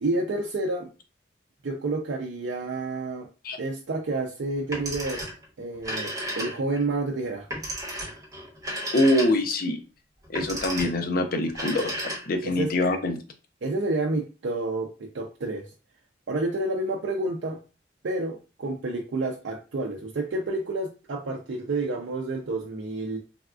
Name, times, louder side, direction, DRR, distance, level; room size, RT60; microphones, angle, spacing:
voice 1, 0.0-0.9 1.6-3.3 3.6-5.2 5.6-7.5 12.4-12.7 13.6-14.9 15.1-15.6 16.3-17.6 18.0-23.2, right 2 dB, 80° right, 0 dB, 0.5 m, -29 dB
Telephone, 4.6-5.4 5.7-6.8 7.5-9.6 10.2-11.0 11.5-12.5, equal, 20° right, 1.0 m, -33 dB
voice 2, 8.9-9.8 10.3-13.2, left 1 dB, 50° left, 6 dB, 0.5 m, -24 dB
3.4 x 2.3 x 2.4 m, 0.32 s
head